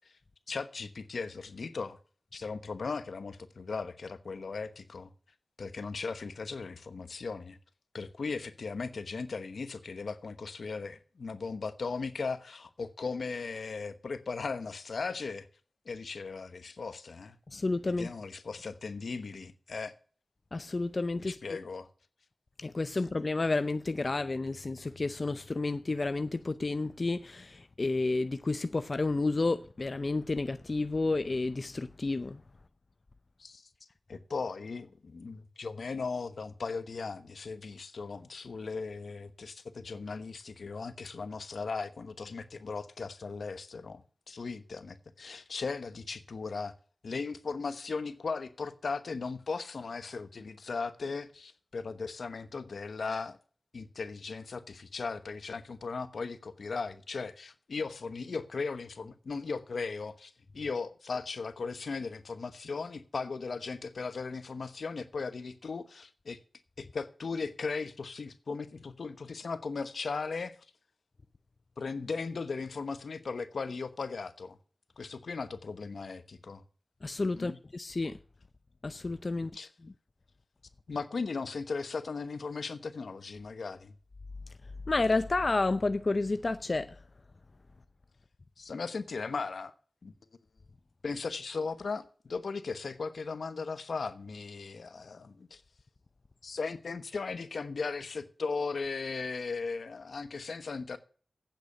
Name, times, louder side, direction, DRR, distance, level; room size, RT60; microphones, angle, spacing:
voice 1, 0.5-2.0 2.3-5.1 5.6-7.6 7.9-15.5 15.8-17.4 18.0-19.9 21.2-21.9 33.4-33.7 34.1-46.7 47.0-53.4 53.7-66.4 66.8-70.6 71.8-74.6 75.0-76.6 77.4-77.6 79.3-79.7 80.9-83.9 88.6-89.7 90.0-90.1 91.0-95.6 96.4-101.0, left 4 dB, 80° left, 1.0 m, -37 dB
voice 2, 17.5-18.1 20.5-21.6 22.6-32.4 77.0-78.2 78.8-79.5 84.9-86.9, left 3 dB, 50° left, 0.6 m, -31 dB
8.7 x 8.0 x 7.9 m
cardioid pair, 50°, 0 cm